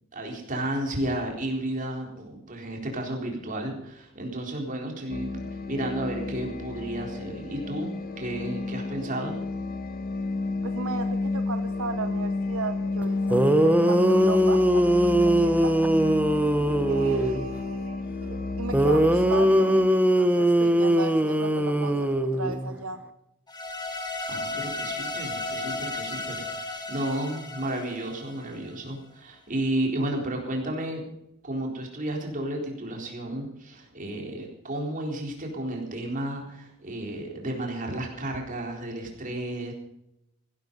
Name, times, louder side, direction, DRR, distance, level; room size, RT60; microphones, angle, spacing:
voice 1, 0.1-5.4 5.7-7.9 8.2-9.4 24.3-31.1 31.4-39.7, right 1 dB, 40° right, 1 dB, 3.9 m, -32 dB
sound 1, 5.1-19.9, left 3 dB, 45° left, 1.4 m, -31 dB
voice 2, 10.6-15.8 16.9-19.8 20.2-23.0, right 4 dB, 90° right, 9 dB, 1.0 m, -36 dB
sound 2, 13.0-13.1 13.3-17.5 18.7-22.8, right 1 dB, 10° right, 0.9 m, -21 dB
sound 3, 23.5-28.7, left 2 dB, 20° left, 2.2 m, -34 dB
15.5 x 12.5 x 5.4 m, 0.81 s
head